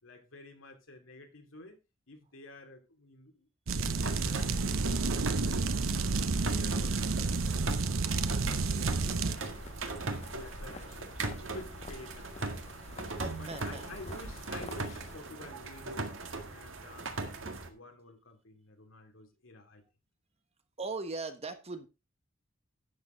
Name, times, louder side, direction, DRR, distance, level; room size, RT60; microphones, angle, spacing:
voice 1, 0.0-1.8 2.1-3.5 3.9-5.7 6.2-9.5 10.1-12.7 13.4-16.0 16.4-19.8, left 2 dB, 75° left, 2.9 m, -51 dB
sound 1, 3.7-9.4, right 3 dB, 85° right, 0.9 m, -30 dB
sound 2, 3.8-17.7, right 2 dB, 70° right, 1.9 m, -39 dB
sound 3, 8.6-15.2, left 2 dB, 35° left, 0.8 m, -48 dB
voice 2, 13.1-13.8 20.8-21.9, right 3 dB, 30° right, 1.3 m, -39 dB
12.0 x 8.3 x 3.9 m
head